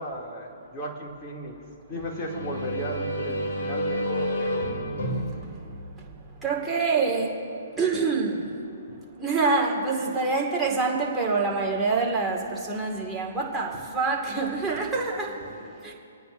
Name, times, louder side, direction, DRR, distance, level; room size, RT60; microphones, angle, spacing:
voice 1, 0.0-1.5 1.9-4.7, equal, 25° left, 2.7 m, -35 dB
sound 1, 1.9-6.7, equal, 70° left, 2.9 m, -30 dB
voice 2, 6.4-7.4 7.8-8.5 9.1-15.9, right 4 dB, 5° right, 2.1 m, -26 dB
26.0 x 9.4 x 2.7 m
hypercardioid pair, 145°, 0 cm